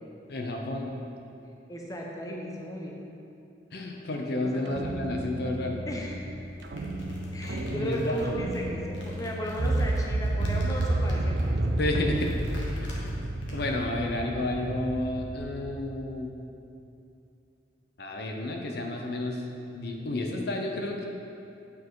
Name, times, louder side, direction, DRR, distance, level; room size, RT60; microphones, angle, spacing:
voice 1, 0.3-0.9 3.7-5.8 7.7-8.2 11.8-12.3 13.5-16.4 18.0-19.4 19.7-21.1, left 1 dB, 60° left, 1 dB, 0.6 m, -31 dB
voice 2, 1.7-3.0 4.4-4.6 5.9-6.2 7.3-11.8, equal, 20° left, -2 dB, 0.7 m, -35 dB
sound 1, 4.7-15.9, right 1 dB, 60° right, 0.5 m, -31 dB
sound 2, 6.4-13.8, left 1 dB, 85° left, 1.3 m, -50 dB
8.2 x 4.6 x 4.7 m, 2.7 s
head